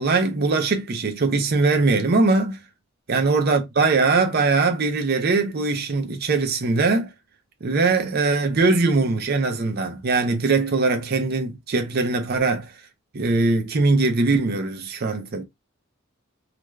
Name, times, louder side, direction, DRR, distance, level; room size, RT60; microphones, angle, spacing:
voice 1, 0.0-2.6 3.1-7.1 7.6-12.7 13.1-15.4, right 3 dB, 45° right, 0.5 m, -21 dB
2.5 x 2.2 x 3.1 m
head